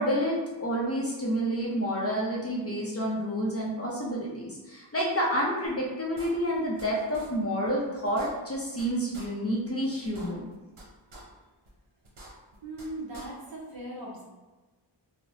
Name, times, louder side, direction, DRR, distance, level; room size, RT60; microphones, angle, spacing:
voice 1, 0.0-10.5, equal, 30° left, -4 dB, 0.6 m, -29 dB
sound 1, 5.7-5.8 6.2-6.9 7.1-7.3 7.7-7.8 8.0-8.9 9.1-9.3 9.7-9.8 10.0-10.8 11.1-11.2 11.7-11.8 12.0-12.9 13.1-13.3, right 1 dB, 80° right, 0.8 m, -47 dB
voice 2, 12.6-14.2, right 1 dB, 50° right, -4 dB, 0.8 m, -39 dB
3.0 x 2.0 x 2.6 m, 1.2 s
wide cardioid pair, 75°, 48 cm